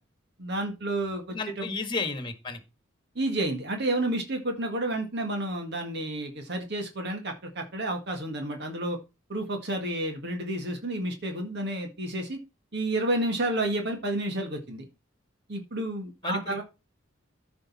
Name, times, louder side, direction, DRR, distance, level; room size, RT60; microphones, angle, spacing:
voice 1, 0.4-1.7 3.1-9.0 9.3-12.4 12.7-14.9 15.5-16.6, right 1 dB, 55° right, 1.8 m, -30 dB
voice 2, 1.3-2.6 16.2-16.6, left 3 dB, 25° left, 1.6 m, -33 dB
14.5 x 5.3 x 4.1 m
head